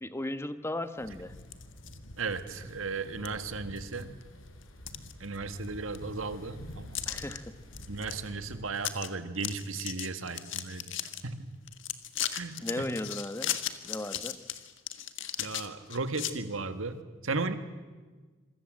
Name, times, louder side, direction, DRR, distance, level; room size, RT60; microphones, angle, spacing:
voice 1, 0.0-1.3 7.1-7.6 12.6-13.6 13.8-14.4, left 1 dB, 15° left, 11 dB, 1.1 m, -36 dB
sound 1, 1.0-8.6, equal, 85° left, 5.1 m, -48 dB
sound 2, 1.4-2.0 2.5-2.6 3.2-3.3 3.8-4.2 4.6-5.6 5.9-6.0 6.9-7.4 7.7-8.1 8.4-8.5 8.8-9.1 9.3-11.2 11.7-16.3, left 11 dB, 65° left, 1.6 m, -36 dB
voice 2, 2.2-4.1 5.2-7.1 7.9-11.5 12.3-12.9 15.4-17.6, right 3 dB, 80° right, 9 dB, 1.8 m, -36 dB
26.5 x 24.0 x 7.6 m, 1.3 s
head